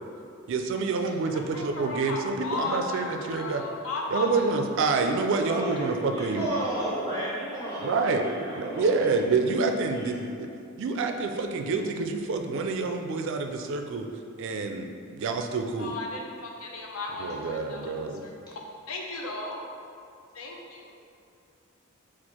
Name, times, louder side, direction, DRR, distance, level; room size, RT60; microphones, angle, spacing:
voice 1, 0.5-3.6 4.1-6.5 7.8-8.2 8.6-10.5 10.8-14.1 14.4-16.0 17.2-18.3, right 4 dB, 60° right, 5 dB, 0.3 m, -27 dB
voice 2, 1.3-4.5 4.9-5.2 5.8-5.9 15.8-17.9 18.2-18.3 18.9-19.6 20.3-20.9, left 2 dB, 75° left, 0 dB, 0.6 m, -35 dB
voice 3, 5.4-9.3 9.9-10.2, right 1 dB, 20° left, -10 dB, 1.1 m, -33 dB
4.4 x 2.4 x 4.2 m, 2.5 s
head